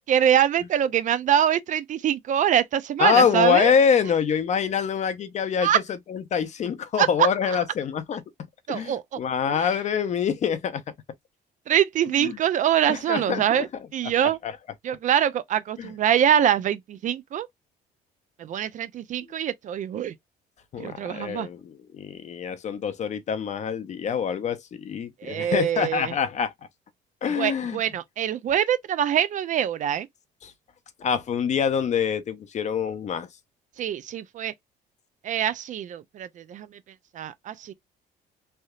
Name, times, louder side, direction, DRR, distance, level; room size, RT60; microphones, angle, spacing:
voice 1, 0.1-3.7 5.6-5.8 7.0-7.6 8.7-9.2 9.5-9.7 11.7-14.4 14.8-17.5 18.4-20.1 20.8-21.5 25.2-26.1 27.3-30.1 33.8-34.5 35.2-36.7 37.1-37.7, right 10 dB, 50° right, 0.4 m, -24 dB
voice 2, 3.0-5.7 6.1-8.2 8.7-10.8 12.2-12.3 12.9-13.7 14.4-14.5 15.8-15.9 20.7-26.5 27.2-27.8 30.4-30.5 31.0-33.3, left 7 dB, 45° left, 0.6 m, -25 dB
3.3 x 2.7 x 2.3 m
cardioid pair, 110°, 17 cm